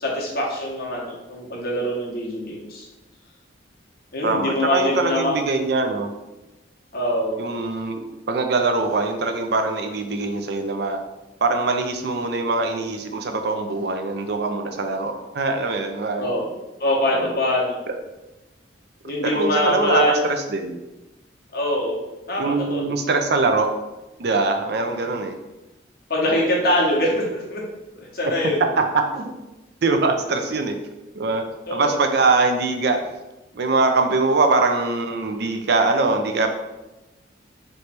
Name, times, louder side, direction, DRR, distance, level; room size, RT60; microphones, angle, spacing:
voice 1, 0.0-2.9 4.1-5.4 6.9-7.4 16.2-16.5 16.8-17.8 19.0-20.2 21.5-22.0 22.3-22.9 26.1-27.6 28.0-28.6 31.7-32.0, left 1 dB, 55° left, -3 dB, 1.1 m, -23 dB
voice 2, 4.2-6.1 7.4-11.0 11.4-16.3 17.1-17.3 17.9-18.0 19.2-20.0 20.5-20.8 22.4-23.7 24.2-25.4 28.8-29.3 29.8-30.8 31.1-31.4 31.7-33.0 33.5-36.5, right 3 dB, 60° right, 6 dB, 0.5 m, -22 dB
3.2 x 3.1 x 4.3 m, 1.0 s
head